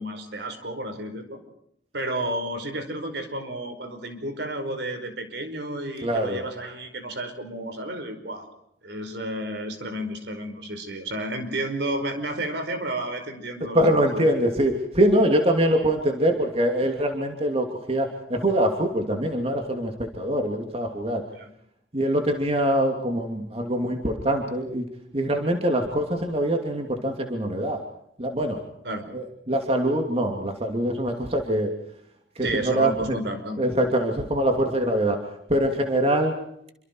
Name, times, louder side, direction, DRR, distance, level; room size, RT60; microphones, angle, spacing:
voice 1, 0.0-1.4 1.9-8.5 8.8-14.2 21.4-21.5 28.8-29.0 32.4-33.7, right 1 dB, 70° right, 7 dB, 4.9 m, -31 dB
voice 2, 6.0-6.4 13.7-21.2 21.9-24.9 25.1-27.8 28.2-28.6 29.1-31.7 32.4-32.9 33.6-35.2 35.5-36.4, right 1 dB, 35° right, 3 dB, 2.8 m, -24 dB
28.0 x 25.0 x 4.7 m, 0.73 s
head